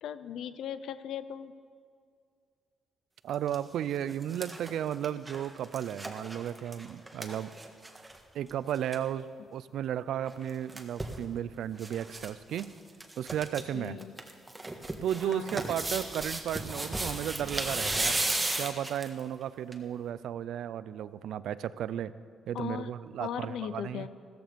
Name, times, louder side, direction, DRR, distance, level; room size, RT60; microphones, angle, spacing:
voice 1, 0.0-1.5 13.7-14.1 15.2-15.6 22.5-22.9 23.2-24.1, left 9 dB, 75° left, 13 dB, 0.6 m, -38 dB
voice 2, 3.2-7.5 8.3-12.7 13.2-14.0 15.0-18.2 18.6-22.1 22.5-24.1, right 10 dB, 75° right, 16 dB, 0.5 m, -34 dB
sound 1, 3.3-3.5 3.9-8.2 8.5-8.6 8.7-9.0 10.3-11.2 11.8-12.3 12.5-12.6 13.0-13.6 14.0-19.2 19.7-19.8, right 2 dB, 15° right, 1.5 m, -35 dB
15.0 x 14.0 x 5.2 m, 2.2 s
cardioid pair, 90°, 0 cm